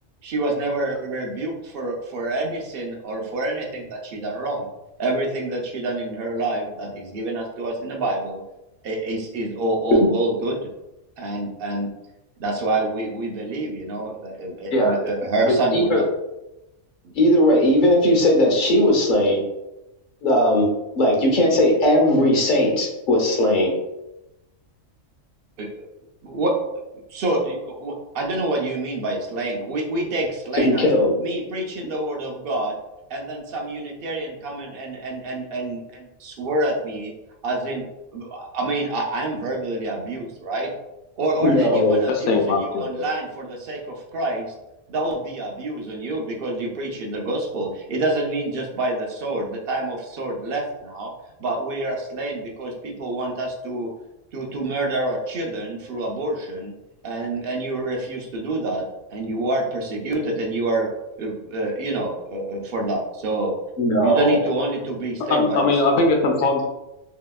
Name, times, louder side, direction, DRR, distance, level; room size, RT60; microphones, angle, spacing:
voice 1, 0.2-4.7 5.0-8.4 8.8-10.6 11.2-11.9 12.4-16.0 25.6-25.8 26.2-26.5 27.1-30.9 31.2-32.7 33.1-37.1 37.4-37.9 38.1-40.7 41.2-44.5 44.9-51.1 51.4-53.9 54.3-56.7 57.0-58.8 59.1-60.9 61.2-63.5 63.9-66.1, right 2 dB, 55° right, 0 dB, 0.7 m, -27 dB
voice 2, 15.5-16.0 17.1-19.4 20.2-20.7 21.0-23.7 30.5-31.1 41.4-42.0 63.8-64.4, left 1 dB, 45° left, -1 dB, 0.8 m, -18 dB
voice 3, 42.1-43.0 65.3-66.6, left 3 dB, 75° left, 2 dB, 0.9 m, -20 dB
3.2 x 2.8 x 2.2 m, 0.93 s
omnidirectional pair, 1.3 m